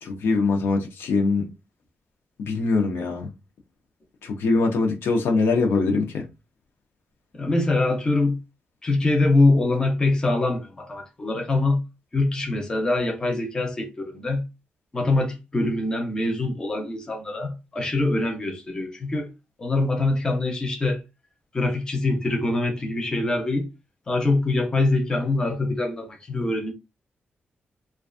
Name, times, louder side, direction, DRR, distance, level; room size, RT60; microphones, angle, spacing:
voice 1, 0.0-1.5 2.4-3.3 4.2-6.2, left 3 dB, 85° left, 0.6 m, -23 dB
voice 2, 7.3-8.4 8.8-11.8 12.1-14.4 14.9-19.3 19.6-21.0 21.5-23.7 24.1-26.7, left 2 dB, 20° left, 0.5 m, -24 dB
2.4 x 2.2 x 2.4 m
wide cardioid pair, 170°, 4 cm